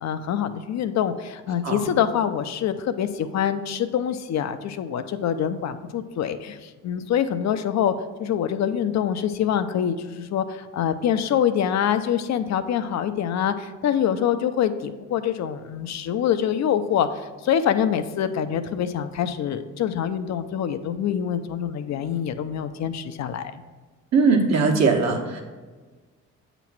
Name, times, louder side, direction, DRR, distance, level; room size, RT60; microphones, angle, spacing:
voice 1, 0.0-7.9 8.2-23.5, left 9 dB, 65° left, 10 dB, 0.6 m, -25 dB
voice 2, 24.1-25.4, right 4 dB, 60° right, 2 dB, 1.2 m, -20 dB
8.3 x 3.0 x 5.9 m, 1.4 s
cardioid pair, 90°, 30 cm